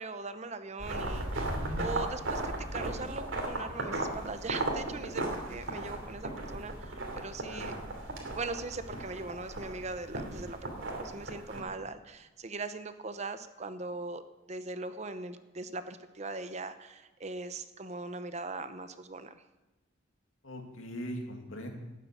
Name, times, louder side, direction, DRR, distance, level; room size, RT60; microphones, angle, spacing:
voice 1, 0.0-7.7 8.3-10.7 11.0-14.2 14.5-19.4, right 3 dB, 35° right, 11 dB, 0.7 m, -40 dB
sound 1, 0.8-11.6, right 2 dB, 75° right, 2.8 m, -36 dB
voice 2, 1.5-1.8 7.4-7.7 20.4-21.7, equal, 80° left, 3 dB, 2.4 m, -40 dB
12.0 x 9.4 x 8.3 m, 1.1 s
head